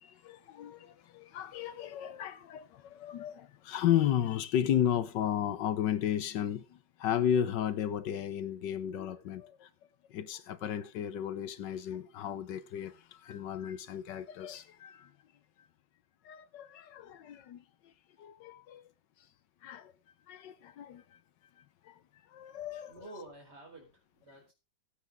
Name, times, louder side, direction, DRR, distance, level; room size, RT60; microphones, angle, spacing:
voice 1, 0.0-9.7 10.1-15.1 16.2-17.6 18.2-18.8 19.6-19.9 20.3-21.0 21.8-22.0 22.3-22.9, left 10 dB, 70° left, 1.4 m, -34 dB
voice 2, 22.9-24.5, right 2 dB, 35° right, 4.5 m, -50 dB
15.0 x 8.3 x 3.6 m
omnidirectional pair, 2.1 m